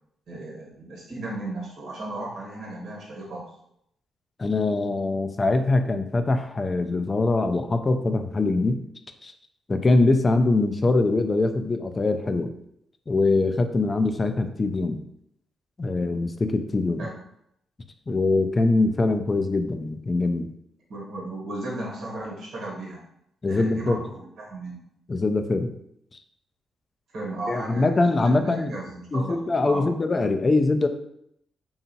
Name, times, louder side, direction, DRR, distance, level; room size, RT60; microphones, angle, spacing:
voice 1, 0.3-3.5 17.0-17.2 20.9-23.1 23.5-24.8 27.1-29.9, right 2 dB, 70° right, -3 dB, 1.1 m, -35 dB
voice 2, 4.4-8.8 9.2-9.3 9.7-12.5 13.1-15.0 15.8-17.1 18.1-20.5 23.4-24.0 25.1-25.7 26.1-26.2 27.5-28.7 29.1-30.9, left 2 dB, 35° left, 7 dB, 0.3 m, -23 dB
2.8 x 2.3 x 2.7 m, 0.75 s
supercardioid pair, 55°, 0 cm